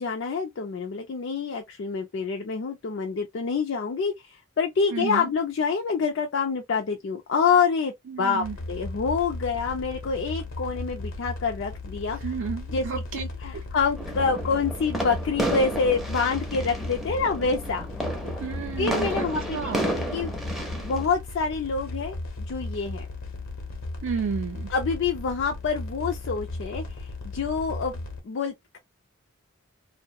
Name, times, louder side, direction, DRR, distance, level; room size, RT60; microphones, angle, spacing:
voice 1, 0.0-12.3 12.7-17.9 18.8-20.3 20.8-23.1 24.7-28.0 28.2-28.8, left 5 dB, 60° left, 0.4 m, -27 dB
voice 2, 4.9-5.3 8.1-8.6 12.1-13.2 13.5-13.6 18.4-19.8 24.0-24.7, right 6 dB, 65° right, 0.4 m, -32 dB
sound 1, 8.4-28.2, left 2 dB, 80° left, 0.8 m, -36 dB
sound 2, 14.0-21.0, right 1 dB, ahead, 0.5 m, -32 dB
2.2 x 2.0 x 2.7 m
head